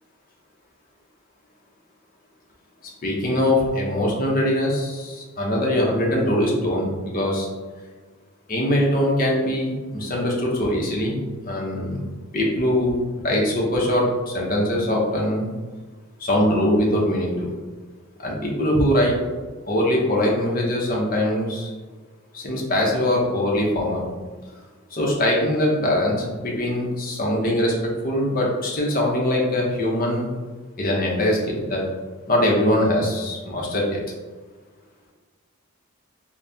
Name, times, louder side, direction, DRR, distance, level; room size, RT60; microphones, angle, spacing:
voice 1, 3.0-7.5 8.5-11.2 11.4-12.0 12.3-13.0 13.2-15.5 16.2-17.5 18.2-19.1 19.7-21.7 22.3-24.0 24.9-27.7 28.0-30.3 30.8-31.9 32.3-34.0, left 1 dB, 45° left, -2 dB, 0.9 m, -22 dB
4.2 x 2.3 x 3.5 m, 1.4 s
head